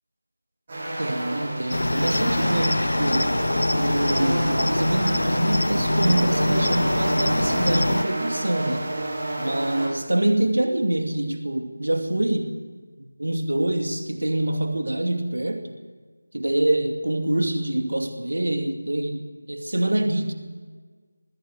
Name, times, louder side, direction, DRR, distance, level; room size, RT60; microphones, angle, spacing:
sound 1, 0.7-9.9, right 1 dB, 35° right, 8.0 m, -30 dB
voice 1, 1.0-3.3 3.7-8.9 9.4-12.6 13.0-15.7 16.3-20.3, right 1 dB, 70° right, 5 dB, 2.5 m, -25 dB
Cricket, 1.7-8.0, left 1 dB, 75° left, 0.7 m, -24 dB
21.0 x 16.5 x 8.2 m, 1.4 s
figure-of-eight pair, 165°, 0 cm